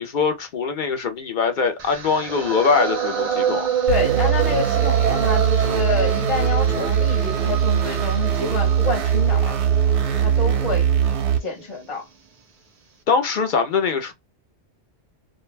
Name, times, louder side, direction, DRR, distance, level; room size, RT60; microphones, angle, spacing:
voice 1, 0.0-3.7 13.1-14.1, left 5 dB, 50° left, 0.7 m, -22 dB
sound 1, 1.8-11.9, right 7 dB, 50° right, 0.5 m, -27 dB
voice 2, 3.9-9.5 10.2-10.9 11.4-12.0, left 3 dB, 30° left, 0.9 m, -27 dB
sound 2, 3.9-11.4, right 9 dB, 90° right, 0.9 m, -21 dB
2.3 x 2.2 x 3.1 m
omnidirectional pair, 1.1 m